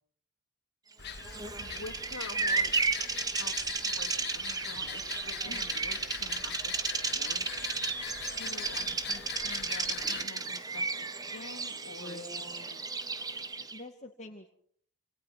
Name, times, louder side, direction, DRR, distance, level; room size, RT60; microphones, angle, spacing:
sound 1, 1.0-10.2, left 8 dB, 50° left, 2.1 m, -42 dB
Bird vocalization bird call bird song, 1.1-13.8, right 4 dB, 15° right, 1.3 m, -33 dB
voice 1, 1.6-2.7 3.3-6.9 7.1-8.0 8.3-12.8 13.6-13.7, left 3 dB, 75° left, 1 dB, 2.8 m, -48 dB
voice 2, 12.0-12.8 13.7-14.5, left 1 dB, 35° left, 2 dB, 2.3 m, -46 dB
28.5 x 28.0 x 6.0 m, 0.64 s
head